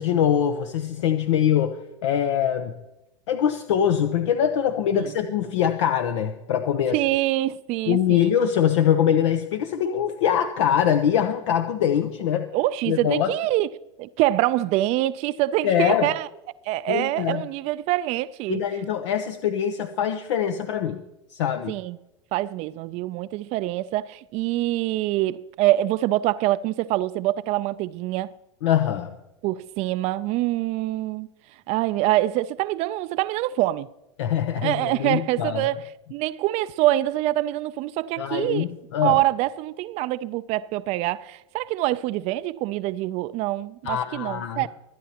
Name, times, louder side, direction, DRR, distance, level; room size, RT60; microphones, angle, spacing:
voice 1, 0.0-2.7 3.3-7.0 7.9-12.5 12.9-13.3 15.6-16.1 16.9-17.4 18.5-21.0 21.3-21.7 28.6-29.1 34.2-35.7 38.2-39.2 43.8-44.7, left 9 dB, 70° left, 0.8 m, -23 dB
voice 2, 6.9-8.3 12.5-13.7 14.0-16.3 16.6-18.6 21.7-22.0 22.3-28.3 29.4-31.3 31.7-33.9 34.6-35.8 36.1-38.7 39.0-44.7, right 16 dB, 45° right, 0.4 m, -25 dB
24.0 x 9.3 x 2.9 m
hypercardioid pair, 95°, 16 cm